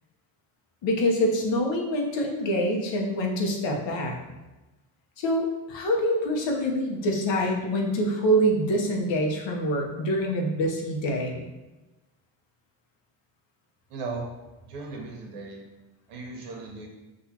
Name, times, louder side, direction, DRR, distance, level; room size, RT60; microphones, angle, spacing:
voice 1, 0.8-4.2 5.2-11.5, equal, 60° left, 1 dB, 1.1 m, -25 dB
voice 2, 13.9-14.3 14.7-15.6 16.1-16.9, right 4 dB, 80° right, 0 dB, 1.2 m, -36 dB
6.2 x 2.7 x 2.9 m, 1.1 s
cardioid pair, 90°, 50 cm